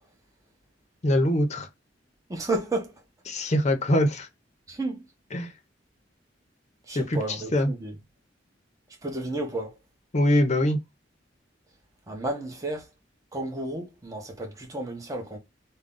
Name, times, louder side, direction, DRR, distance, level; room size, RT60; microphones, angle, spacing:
voice 1, 1.0-1.7 3.3-4.3 5.3-5.5 6.9-7.2 7.5-7.7 10.1-10.8, left 1 dB, 40° left, 0.7 m, -23 dB
voice 2, 2.3-2.9 3.4-3.5 4.7-5.0 6.9-7.9 9.0-9.8 12.1-12.9 13.3-15.4, right 2 dB, 20° right, 1.0 m, -32 dB
3.7 x 2.2 x 3.8 m
head